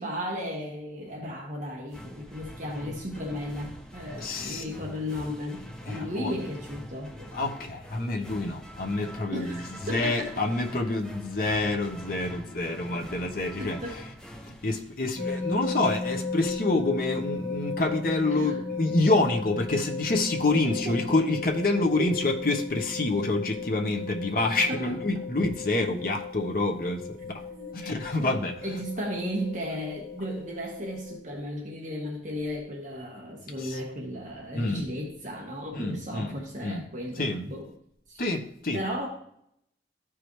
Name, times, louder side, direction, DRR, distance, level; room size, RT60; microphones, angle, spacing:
voice 1, 0.0-7.3 9.3-10.3 12.8-12.9 13.6-14.0 18.3-18.6 20.5-21.1 22.0-22.2 24.7-24.9 27.5-27.7 28.2-37.7 38.1-38.2 38.7-39.1, equal, 45° right, 1.2 m, -35 dB
sound 1, 1.9-15.5, equal, 5° left, 0.6 m, -44 dB
voice 2, 4.2-4.6 5.8-6.3 7.3-14.0 14.4-27.4 27.7-28.6 33.6-33.8 34.5-34.8 35.7-36.8 37.2-37.5 38.2-38.8, left 2 dB, 50° left, 1.0 m, -27 dB
sound 2, 15.1-31.2, left 4 dB, 20° right, 1.9 m, -36 dB
13.5 x 4.9 x 3.1 m
head